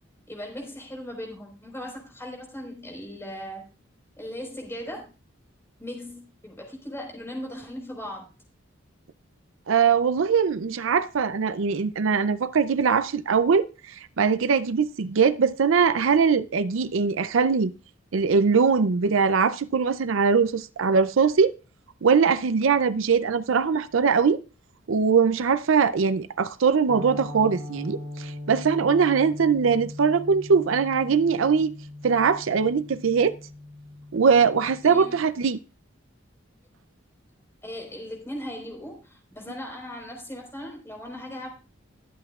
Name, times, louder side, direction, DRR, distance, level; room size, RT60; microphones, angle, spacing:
voice 1, 0.3-3.6 4.2-5.1 5.8-8.3 34.8-35.2 37.6-41.5, equal, 10° left, 4.4 m, -38 dB
voice 2, 9.7-17.7 18.1-21.5 22.0-24.4 24.9-31.7 32.0-33.3 34.1-35.6, right 5 dB, 75° right, 0.5 m, -21 dB
sound 1, 26.9-35.3, left 1 dB, 25° right, 2.6 m, -40 dB
23.0 x 7.9 x 2.4 m
head